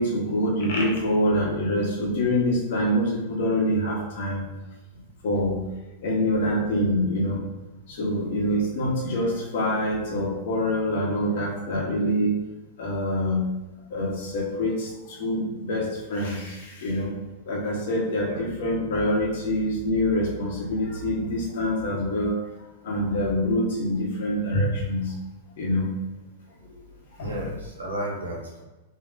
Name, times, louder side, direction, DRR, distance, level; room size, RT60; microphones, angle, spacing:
voice 1, 0.0-4.5 5.2-5.6 6.0-7.4 7.9-12.4 12.8-13.5 13.9-17.1 17.5-22.3 22.8-25.1 25.6-25.9 26.7-26.8 27.2-27.3, left 1 dB, 65° left, -2 dB, 1.3 m, -25 dB
voice 2, 27.2-28.6, right 1 dB, 90° right, -1 dB, 1.0 m, -33 dB
3.8 x 3.2 x 2.7 m, 1.1 s
hypercardioid pair, 105°, 0 cm